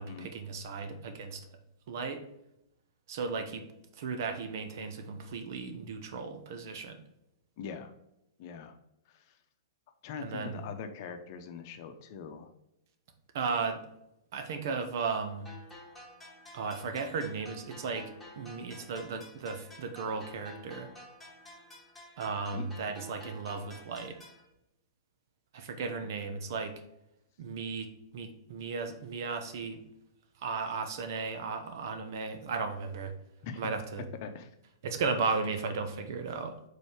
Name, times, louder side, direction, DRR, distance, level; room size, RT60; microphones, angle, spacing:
voice 1, 0.0-1.4 1.9-2.2 3.1-3.6 4.0-7.0 10.2-10.7 13.3-13.8 14.3-15.5 16.5-20.9 22.2-24.2 25.5-26.7 27.4-27.9 28.1-29.8 30.4-33.1 33.6-34.0 34.8-36.5, right 4 dB, 55° right, 6 dB, 1.0 m, -35 dB
voice 2, 7.6-7.9 8.4-8.8 9.1-9.3 10.0-12.5 22.5-22.7 33.4-33.7 34.2-34.5, left 6 dB, 45° left, 7 dB, 0.8 m, -42 dB
sound 1, 15.5-24.5, left 1 dB, ahead, 2.2 m, -51 dB
5.2 x 4.2 x 4.9 m, 0.85 s
figure-of-eight pair, 105°, 2 cm